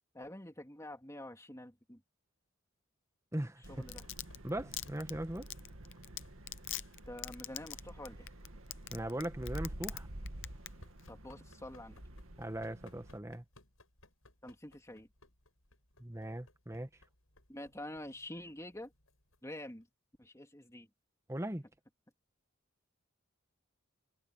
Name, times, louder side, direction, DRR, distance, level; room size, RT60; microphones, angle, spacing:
voice 1, 0.1-2.0 3.7-4.0 7.1-8.3 11.1-12.0 14.4-15.1 17.5-18.9 19.4-19.9 20.2-20.9, left 1 dB, 15° left, 3.0 m, -47 dB
voice 2, 3.3-3.6 4.4-5.5 8.9-10.1 12.4-13.4 16.0-16.9 21.3-21.6, right 1 dB, 15° right, 1.2 m, -39 dB
Domestic sounds home sounds, 3.6-10.0 10.3-10.7 11.0-11.1, left 15 dB, 65° left, 0.7 m, -41 dB
sound 1, 3.6-13.2, right 1 dB, 80° right, 2.1 m, -49 dB
sound 2, 3.7-19.8, left 1 dB, 80° left, 7.5 m, -64 dB
head